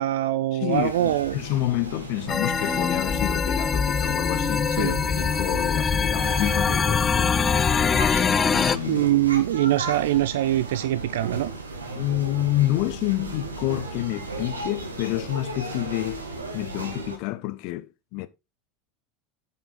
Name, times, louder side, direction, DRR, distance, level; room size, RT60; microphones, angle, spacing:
voice 1, 0.0-1.4 4.8-5.0 8.9-11.5, right 14 dB, 65° right, 0.3 m, -23 dB
voice 2, 0.5-8.2 8.5-9.0 12.0-16.3 16.5-18.3, left 17 dB, 55° left, 0.9 m, -29 dB
sound 1, 0.7-17.2, right 3 dB, 85° right, 1.7 m, -35 dB
sound 2, 2.3-8.8, left 6 dB, 25° left, 0.4 m, -23 dB
9.4 x 5.7 x 3.9 m
figure-of-eight pair, 80°, 0 cm